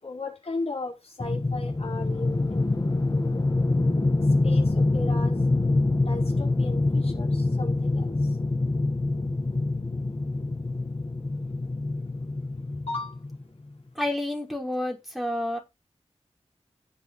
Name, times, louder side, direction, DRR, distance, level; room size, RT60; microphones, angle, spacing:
voice 1, 0.0-2.9 4.4-5.4 6.0-8.1 12.5-13.2, left 2 dB, 70° left, 5.1 m, -36 dB
sound 1, 1.2-13.4, left 2 dB, 35° left, 1.6 m, -25 dB
voice 2, 13.9-15.6, left 1 dB, ahead, 5.5 m, -29 dB
18.0 x 7.7 x 3.2 m
wide cardioid pair, 75°, 11 cm